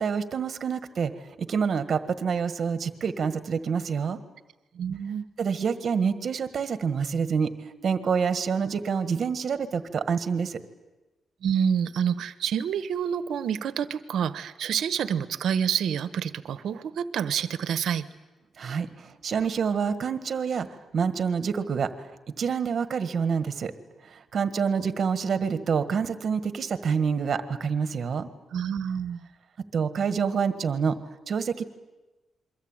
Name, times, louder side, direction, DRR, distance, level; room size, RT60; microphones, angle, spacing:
voice 1, 0.0-4.2 5.4-10.6 18.6-23.7 24.0-28.3 29.7-31.0 31.3-31.6, right 6 dB, 40° right, 11 dB, 1.6 m, -27 dB
voice 2, 4.7-5.2 11.4-18.1 28.5-29.3, right 8 dB, 65° right, 13 dB, 1.3 m, -28 dB
28.0 x 23.5 x 9.0 m, 1.1 s
wide cardioid pair, 175°, 0 cm